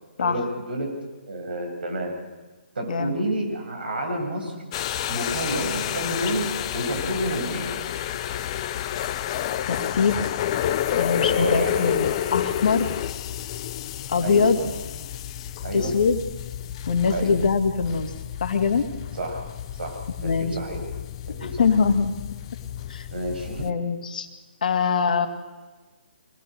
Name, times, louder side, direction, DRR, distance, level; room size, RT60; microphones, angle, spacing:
voice 1, 0.2-0.9 1.2-2.1 2.7-4.6 5.1-6.5 6.7-7.7 11.4-12.0 14.2-14.7 15.6-15.9 17.1-17.3 19.1-20.0 20.2-20.8 21.3-21.6 23.1-23.7, right 1 dB, 60° right, 2 dB, 7.7 m, -29 dB
sound 1, 4.7-23.7, left 11 dB, 30° left, 0.6 m, -30 dB
voice 2, 9.7-10.2 10.9-12.9 14.1-14.6 15.7-16.2 16.9-18.1 18.4-18.9 20.2-20.6 21.4-22.1 22.9-23.1 23.6-24.3 24.6-25.3, left 5 dB, 50° left, 7 dB, 2.1 m, -23 dB
25.0 x 19.5 x 6.6 m, 1.3 s
figure-of-eight pair, 140°, 6 cm